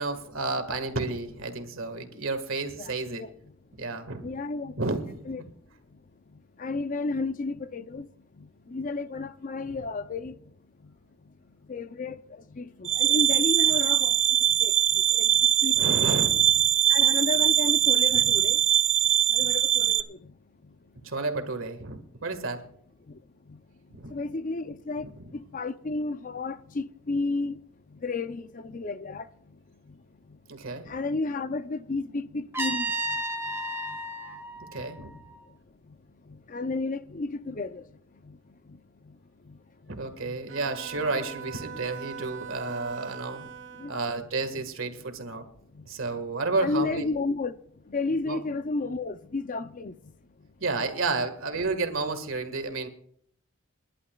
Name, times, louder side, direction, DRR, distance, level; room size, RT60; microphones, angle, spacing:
voice 1, 0.0-3.3 3.8-4.3 4.8-5.5 9.7-9.8 15.8-16.7 18.1-18.3 21.0-22.7 23.9-24.1 25.0-25.3 30.5-31.0 34.7-35.1 39.9-43.4 43.9-45.4 45.9-47.1 48.2-48.4 50.6-52.9, right 3 dB, 80° right, 1.8 m, -31 dB
voice 2, 2.8-3.3 4.2-4.8 5.3-5.4 6.6-8.1 8.7-10.3 11.7-12.2 12.5-14.2 14.6-15.3 15.6-15.8 16.9-18.6 19.3-20.2 24.1-25.1 25.3-27.6 28.0-29.2 30.9-32.8 36.5-37.8 40.2-40.4 43.8-44.0 46.6-47.5 47.9-49.9, left 3 dB, 40° left, 0.6 m, -32 dB
sound 1, 12.9-20.0, right 11 dB, 30° right, 0.6 m, -22 dB
Trumpet, 32.5-35.5, right 1 dB, 10° right, 2.0 m, -33 dB
Bowed string instrument, 40.5-44.1, right 7 dB, 65° right, 1.5 m, -41 dB
29.5 x 11.0 x 2.4 m
head